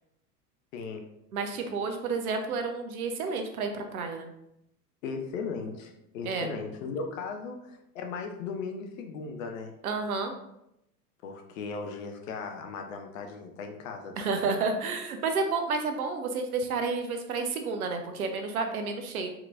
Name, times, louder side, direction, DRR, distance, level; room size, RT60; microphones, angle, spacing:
voice 1, 1.3-4.3 6.2-6.5 9.8-10.3 14.2-19.3, right 4 dB, 60° right, 5 dB, 0.8 m, -30 dB
voice 2, 5.0-9.7 11.2-14.5, left 4 dB, 50° left, 4 dB, 0.8 m, -37 dB
4.4 x 3.9 x 2.5 m, 0.81 s
figure-of-eight pair, 85°, 49 cm